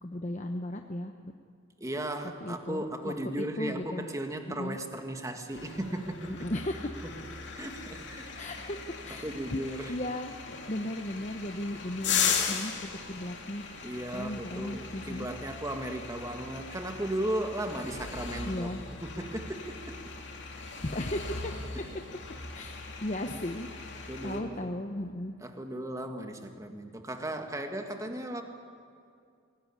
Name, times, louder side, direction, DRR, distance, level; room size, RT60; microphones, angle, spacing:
voice 1, 0.0-1.3 2.4-4.0 4.5-4.8 6.4-7.1 8.4-10.3 10.7-12.7 13.1-13.6 14.1-15.3 18.5-18.8 20.8-21.5 22.5-25.3, left 1 dB, 35° left, 5 dB, 0.9 m, -36 dB
voice 2, 1.8-6.3 7.0-7.1 7.5-8.4 9.1-9.9 13.8-20.0 21.7-21.9 24.1-24.7 25.4-28.4, right 1 dB, 15° right, 5 dB, 1.7 m, -36 dB
sound 1, 5.5-24.4, left 6 dB, 60° left, 2.8 m, -38 dB
23.5 x 17.5 x 9.9 m, 2.4 s
head